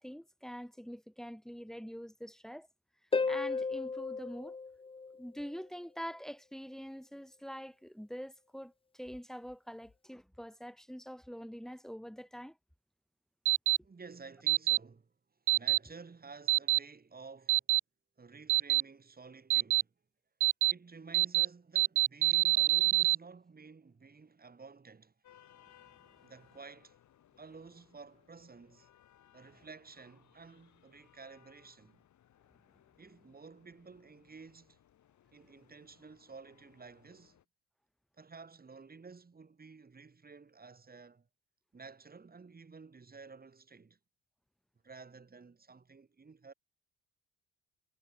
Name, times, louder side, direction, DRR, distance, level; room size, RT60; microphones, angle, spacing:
voice 1, 0.0-2.7 3.3-4.6 5.2-12.6, equal, ahead, 2.1 m, -45 dB
Harp, 3.1-5.6 9.1-9.2, left 4 dB, 20° left, 0.7 m, -35 dB
sound 1, 13.5-13.8 14.5-14.8 15.5-15.8 16.5-16.8 17.5-17.8 18.5-18.8 19.5-19.8 20.4-20.7 21.1-21.5 21.8-23.2, right 18 dB, 85° right, 0.6 m, -25 dB
voice 2, 13.8-15.1 15.5-17.6 18.2-19.9 20.7-25.1 26.2-27.0 27.4-28.9 29.3-32.0 33.0-34.8 35.3-37.4 38.2-41.3 41.7-44.0 44.8-46.5, right 4 dB, 30° right, 5.4 m, -53 dB
sound 2, 25.2-37.4, left 11 dB, 70° left, 6.1 m, -65 dB
cardioid pair, 90°, 30 cm